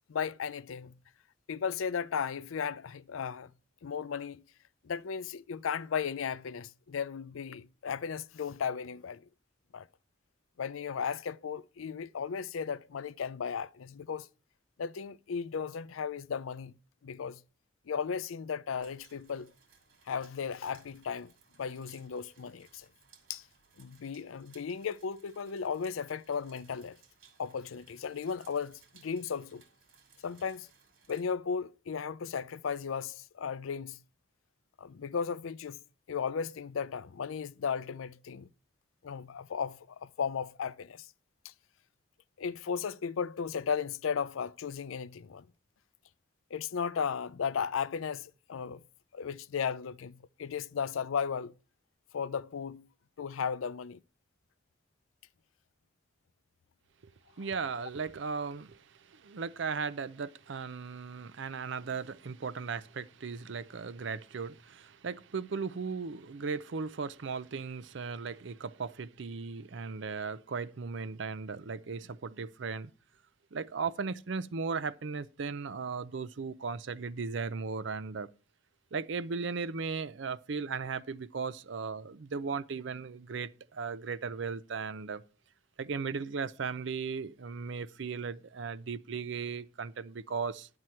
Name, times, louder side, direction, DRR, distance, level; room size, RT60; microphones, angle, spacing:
voice 1, 0.1-1.0 1.5-3.5 3.8-4.4 4.8-9.2 9.7-9.9 10.6-14.3 14.8-16.7 17.0-17.4 17.9-19.5 20.1-21.3 21.6-22.9 23.3-23.4 23.8-27.0 27.4-29.6 30.2-30.7 31.1-34.0 34.8-35.8 36.1-38.5 39.0-41.1 41.4-41.5 42.4-45.4 46.5-48.8 49.1-51.5 52.1-52.8 53.2-54.0, left 6 dB, 85° left, 0.5 m, -35 dB
sound 1, 18.8-31.3, right 6 dB, 85° right, 2.6 m, -63 dB
voice 2, 57.4-72.9 73.5-78.3 78.9-85.2 85.8-90.7, right 5 dB, 65° right, 0.5 m, -37 dB
11.0 x 7.7 x 4.4 m
head